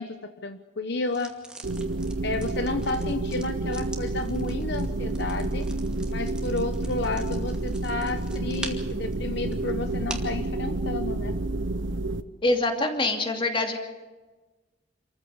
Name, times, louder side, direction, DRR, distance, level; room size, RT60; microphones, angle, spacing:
voice 1, 0.0-1.3 2.2-5.6 6.1-11.3, left 2 dB, 60° left, 8 dB, 1.0 m, -31 dB
sound 1, 1.1-10.4, right 1 dB, 5° right, 2.2 m, -44 dB
Ilmakierto loop, 1.6-12.2, right 2 dB, 80° right, 1.0 m, -29 dB
voice 2, 12.4-13.8, left 2 dB, 25° left, 4 dB, 2.7 m, -25 dB
27.5 x 15.0 x 7.1 m, 1.2 s
head